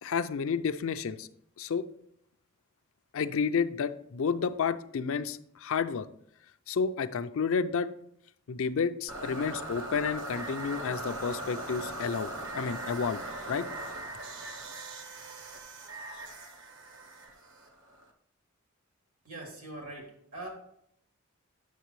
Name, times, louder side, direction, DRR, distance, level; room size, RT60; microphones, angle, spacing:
voice 1, 0.0-1.3 1.6-1.8 3.1-6.1 6.7-7.9 8.5-12.3 12.6-13.2 13.5-13.6, left 6 dB, 65° left, 11 dB, 0.4 m, -30 dB
sound 1, 9.1-18.1, right 2 dB, 60° right, 0.9 m, -40 dB
voice 2, 19.2-20.5, right 2 dB, 85° right, -1 dB, 2.9 m, -42 dB
9.3 x 6.5 x 3.1 m, 0.71 s
head